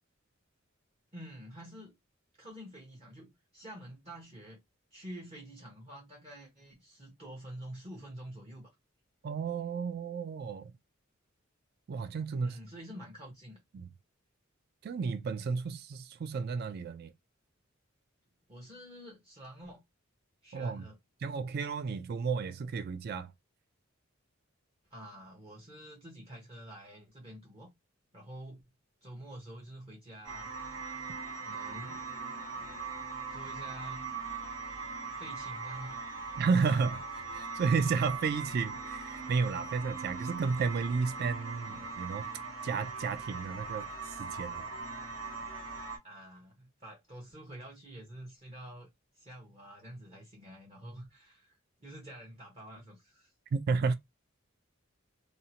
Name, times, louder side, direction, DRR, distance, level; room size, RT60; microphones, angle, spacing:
voice 1, 1.1-1.9 2.4-4.6 4.9-8.7 12.4-13.6 18.5-19.8 20.4-21.0 24.9-27.7 28.1-28.6 29.0-30.5 31.3-32.1 33.3-34.2 35.1-36.1 46.0-48.9 49.1-53.3, right 1 dB, 30° right, 0.8 m, -48 dB
voice 2, 9.2-10.7 11.9-12.6 13.7-13.9 14.8-17.1 20.5-20.9 21.2-23.3 36.4-42.3 42.6-44.7 53.5-53.9, right 5 dB, 50° right, 0.3 m, -32 dB
sound 1, 30.2-46.0, right 4 dB, 80° right, 1.1 m, -40 dB
2.6 x 2.1 x 2.8 m
head